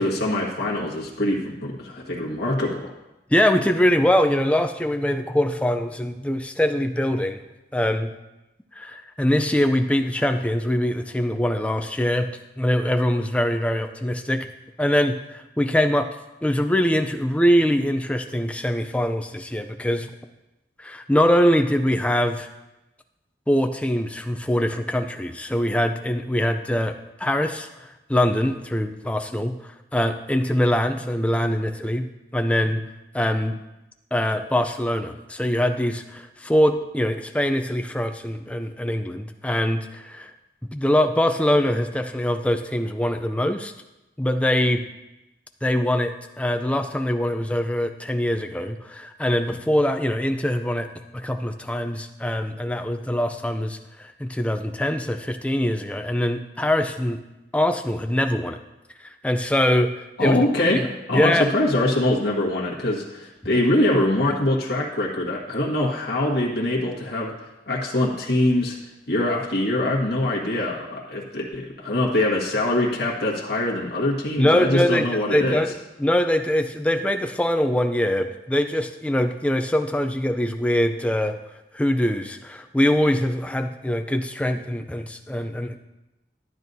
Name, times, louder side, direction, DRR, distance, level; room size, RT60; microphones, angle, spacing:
voice 1, 0.0-2.9 60.2-60.8 61.1-67.3 67.7-68.8 69.1-75.6, left 1 dB, 65° left, -3 dB, 1.6 m, -23 dB
voice 2, 3.3-7.4 7.7-8.1 8.7-12.3 12.6-14.5 14.8-16.2 16.4-20.1 20.8-22.5 23.5-32.9 33.1-33.6 34.1-40.3 40.7-43.7 44.2-44.8 45.6-50.9 51.1-57.2 57.5-58.6 59.0-60.4 60.6-60.9 61.1-61.5 74.4-81.4 81.7-85.8, left 1 dB, 5° left, 7 dB, 0.4 m, -23 dB
12.5 x 9.0 x 2.7 m, 0.98 s
head